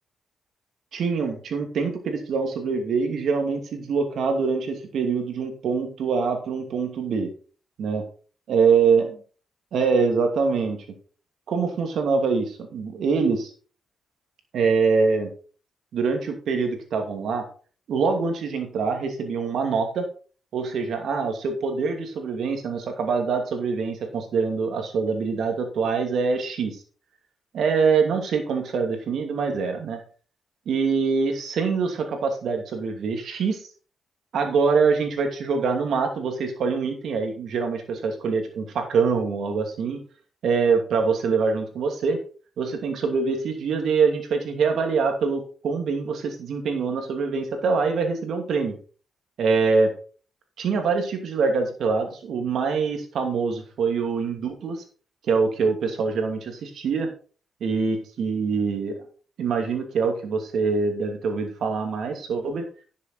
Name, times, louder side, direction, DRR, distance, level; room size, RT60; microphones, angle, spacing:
voice 1, 0.9-7.3 7.8-8.0 8.5-9.1 9.7-10.8 11.5-13.5 14.5-15.3 15.9-17.5 17.9-20.0 20.5-26.8 27.5-30.0 30.7-33.7 34.3-40.0 40.4-42.2 42.6-48.8 49.4-49.9 50.6-54.8 55.3-57.1 57.6-58.9 59.4-62.7, right 5 dB, 75° right, 5 dB, 2.5 m, -24 dB
10.5 x 7.5 x 4.0 m, 0.40 s
cardioid pair, 65°, 0 cm